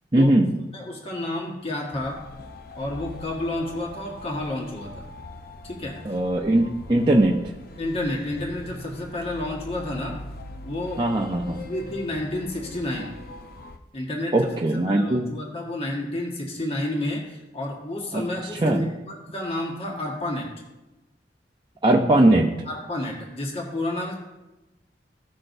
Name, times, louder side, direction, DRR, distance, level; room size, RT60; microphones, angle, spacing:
voice 1, 0.1-0.5 6.0-7.3 11.0-11.6 14.3-15.3 18.1-18.3 18.6-18.9 21.8-22.5, right 1 dB, 25° right, -2 dB, 0.6 m, -20 dB
voice 2, 0.7-2.2 2.8-5.1 5.6-6.0 7.8-10.2 10.6-11.0 11.7-13.1 13.9-14.5 14.9-20.5 22.6-24.1, left 1 dB, 35° left, -1 dB, 1.5 m, -30 dB
sound 1, 1.9-13.8, left 2 dB, 55° left, 0.7 m, -41 dB
16.0 x 5.9 x 2.6 m, 1.0 s
head